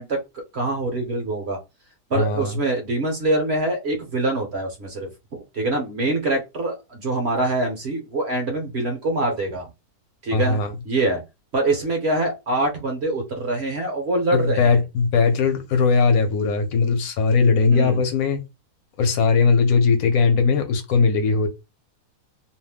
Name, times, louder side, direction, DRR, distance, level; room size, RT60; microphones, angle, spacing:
voice 1, 0.0-1.6 2.1-5.1 5.5-9.7 10.2-10.6 10.8-11.2 11.5-14.7 17.7-18.0, right 2 dB, 50° right, 0.9 m, -24 dB
voice 2, 2.1-2.5 10.3-10.7 14.3-18.4 19.0-21.5, left 4 dB, 65° left, 1.1 m, -19 dB
2.7 x 2.1 x 3.3 m
omnidirectional pair, 1.7 m